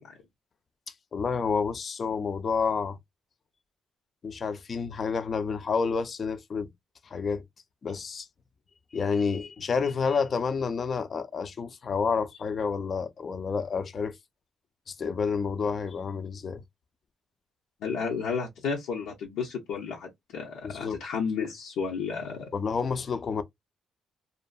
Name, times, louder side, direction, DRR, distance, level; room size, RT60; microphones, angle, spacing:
voice 1, 0.9-3.0 4.2-6.7 7.0-7.4 7.8-8.3 8.9-14.2 14.9-16.6 20.6-21.0 22.5-23.4, left 5 dB, 45° left, 0.4 m, -29 dB
voice 2, 17.8-22.5, left 5 dB, 90° left, 0.6 m, -32 dB
2.6 x 2.4 x 2.2 m
cardioid pair, 90°, 0 cm